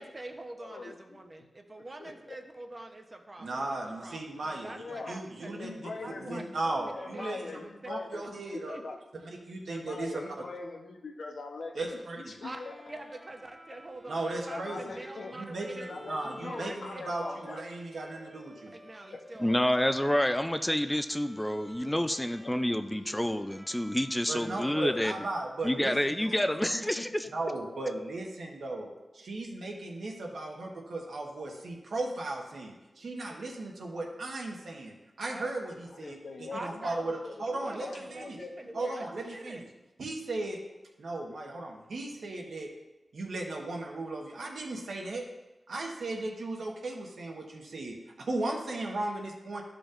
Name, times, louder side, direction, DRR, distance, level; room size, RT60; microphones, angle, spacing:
voice 1, 0.0-4.2 4.4-5.5 6.0-7.6 8.2-8.3 8.7-9.0 12.4-12.6 12.9-15.9 16.4-17.6 18.7-20.1 20.6-20.8 35.2-35.5 36.5-37.0 37.5-39.7, right 2 dB, 35° right, 4 dB, 0.8 m, -45 dB
voice 2, 0.6-1.2 2.0-2.4 4.7-5.2 5.5-6.5 6.9-9.0 9.7-12.7 14.5-15.4 15.8-17.6 18.8-19.2 22.4-22.5 26.7-27.3 35.9-39.0, left 3 dB, 85° left, 3 dB, 0.8 m, -42 dB
voice 3, 3.4-5.9 6.2-7.6 7.9-8.8 9.5-10.2 11.7-12.4 14.1-14.8 15.4-18.7 24.3-26.5 27.3-38.4 38.7-39.6 40.0-40.6 41.0-42.7 43.1-45.3 45.7-49.6, right 2 dB, 85° right, 0 dB, 1.2 m, -36 dB
Bowed string instrument, 12.4-26.3, equal, 15° right, 1.5 m, -52 dB
voice 4, 19.4-25.1 25.6-27.2, left 1 dB, 10° left, 9 dB, 0.3 m, -28 dB
12.0 x 5.0 x 2.5 m, 1.0 s
wide cardioid pair, 90°, 0 cm